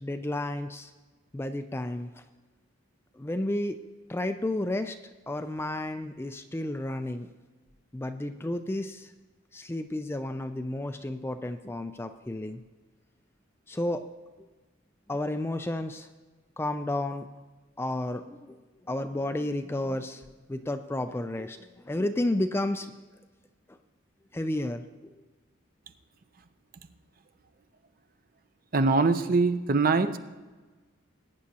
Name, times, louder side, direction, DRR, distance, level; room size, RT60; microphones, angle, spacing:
voice 1, 0.0-0.9 1.3-2.1 3.1-3.8 4.1-5.0 5.3-7.3 7.9-9.1 9.5-12.6 13.7-14.0 15.1-16.1 16.6-17.3 17.8-18.6 18.9-20.2 20.5-21.6 21.8-22.9 24.3-24.8, left 1 dB, 10° left, 8 dB, 0.3 m, -31 dB
voice 2, 28.7-30.2, right 3 dB, 45° right, 10 dB, 0.6 m, -23 dB
20.5 x 9.6 x 2.9 m, 1.3 s
head